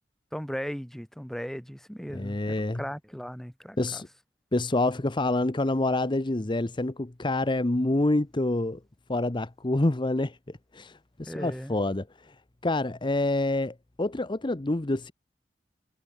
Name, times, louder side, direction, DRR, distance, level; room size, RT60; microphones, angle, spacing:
voice 1, 0.3-4.0 11.3-11.7, equal, ahead, 1.6 m, -37 dB
voice 2, 2.1-2.8 3.8-4.1 4.5-8.8 9.1-10.4 10.7-12.3 12.6-15.1, left 2 dB, 25° left, 0.8 m, -27 dB
head